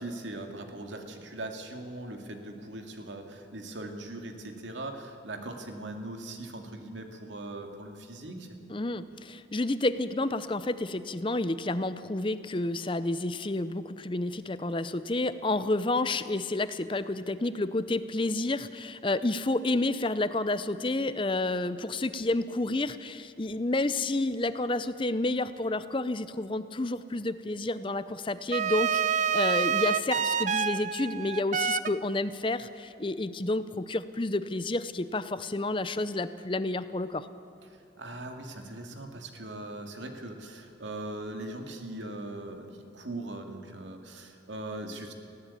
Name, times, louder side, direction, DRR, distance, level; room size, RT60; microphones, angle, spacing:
voice 1, 0.0-8.5 38.0-42.7 42.9-45.1, right 1 dB, 85° right, 4 dB, 2.3 m, -40 dB
voice 2, 8.7-37.3, left 2 dB, 25° left, 13 dB, 0.6 m, -30 dB
sound 1, 28.5-31.9, right 7 dB, 40° right, 0.5 m, -27 dB
19.0 x 16.5 x 8.5 m, 2.6 s
head